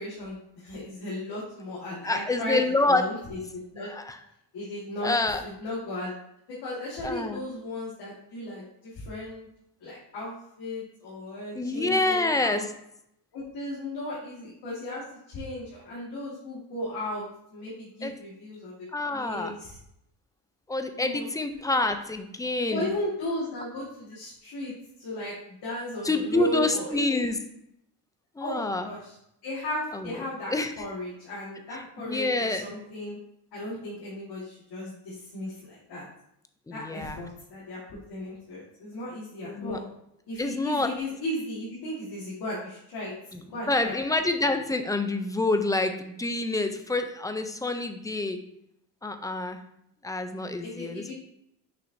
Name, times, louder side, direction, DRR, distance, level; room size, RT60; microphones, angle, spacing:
voice 1, 0.0-3.4 3.7-3.9 4.5-6.1 6.5-9.5 9.8-12.6 13.3-18.9 19.1-19.8 21.0-21.3 22.7-24.7 25.0-27.3 28.4-29.2 29.4-33.2 33.5-36.0 36.7-39.8 40.3-43.1 43.4-44.2 50.6-51.1, left 1 dB, 70° left, -6 dB, 1.8 m, -36 dB
voice 2, 2.0-3.0 3.8-4.2 5.0-5.4 7.0-7.4 11.5-12.7 18.0-18.1 18.9-19.6 20.7-22.9 26.0-27.4 28.4-28.9 29.9-30.7 31.7-32.7 36.7-37.2 39.4-39.8 40.4-40.9 43.3-43.4 43.7-48.4 49.0-49.6 50.0-51.1, left 2 dB, 10° left, 7 dB, 0.4 m, -27 dB
6.4 x 5.6 x 2.7 m, 0.76 s
cardioid pair, 130°, 41 cm